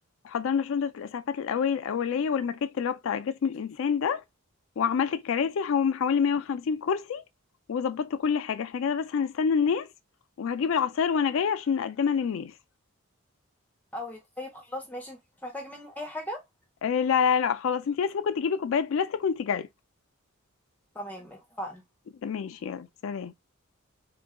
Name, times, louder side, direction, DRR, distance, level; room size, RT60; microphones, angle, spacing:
voice 1, 0.2-4.2 4.8-7.2 7.7-9.9 10.4-12.5 16.8-19.7 22.2-23.3, left 6 dB, 65° left, 0.3 m, -27 dB
voice 2, 13.9-16.4 20.9-21.8, left 1 dB, 10° left, 0.6 m, -38 dB
3.6 x 2.2 x 3.5 m
head